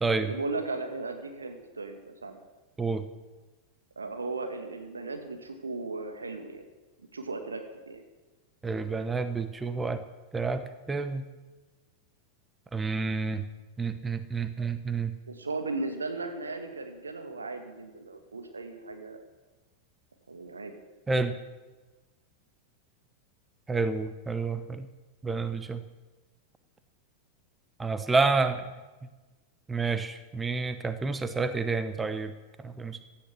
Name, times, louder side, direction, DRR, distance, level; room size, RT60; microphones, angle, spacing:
voice 1, 0.3-2.4 4.0-6.7 7.1-8.0 15.3-19.2 20.3-20.8, right 3 dB, 75° right, 5 dB, 2.0 m, -36 dB
voice 2, 8.6-10.0 10.3-11.2 12.7-13.4 13.8-15.1 21.1-21.4 23.7-24.9 25.2-25.8 27.8-28.6 29.7-32.3 32.6-33.0, right 4 dB, 15° right, 10 dB, 0.9 m, -29 dB
16.5 x 11.5 x 6.2 m, 1.2 s
figure-of-eight pair, 90°, 0 cm